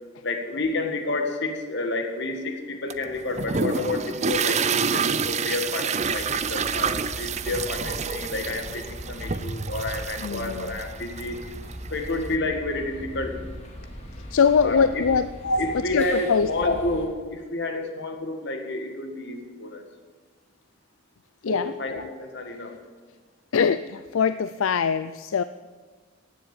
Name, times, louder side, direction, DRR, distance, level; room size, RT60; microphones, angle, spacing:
voice 1, 0.2-11.4 11.9-13.5 14.6-15.1 15.4-19.8 21.5-22.8, left 2 dB, 55° left, 5 dB, 1.8 m, -30 dB
sound 1, 2.9-12.3, right 6 dB, 35° right, 0.5 m, -28 dB
sound 2, 6.0-17.1, equal, 30° left, 2.5 m, -40 dB
voice 2, 10.2-10.7 14.3-15.3 15.9-16.7 21.4-21.7 23.5-25.4, left 6 dB, 75° left, 13 dB, 0.4 m, -22 dB
17.0 x 7.5 x 8.9 m, 1.4 s
head